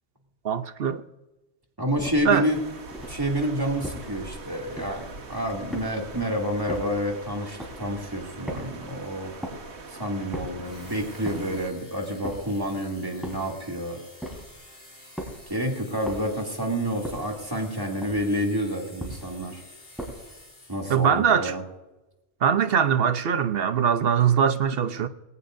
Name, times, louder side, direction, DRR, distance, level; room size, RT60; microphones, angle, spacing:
voice 1, 0.4-1.0 2.2-2.5 20.9-21.5 22.4-25.1, right 7 dB, 65° right, 1.0 m, -22 dB
voice 2, 1.8-2.6 3.1-9.3 9.9-14.0 15.5-19.6 20.7-21.6, equal, 20° right, 2.7 m, -29 dB
sound 1, 2.0-2.4 2.9-3.3 3.8-4.2 4.8-5.2 5.7-6.2 6.7-7.1 7.6-7.9 8.5-8.9 9.4-9.8 10.3-10.7 11.3-11.7 12.2-12.7 13.2-13.6 14.2-14.6 15.2-15.5 16.1-16.5 17.0-17.4 18.0-18.4 19.0-19.4 20.0-20.4, equal, ahead, 4.1 m, -38 dB
sound 2, 2.4-11.7, right 3 dB, 80° right, 1.6 m, -43 dB
sound 3, 10.6-21.2, left 1 dB, 65° left, 5.0 m, -50 dB
20.5 x 18.0 x 2.6 m
omnidirectional pair, 1.1 m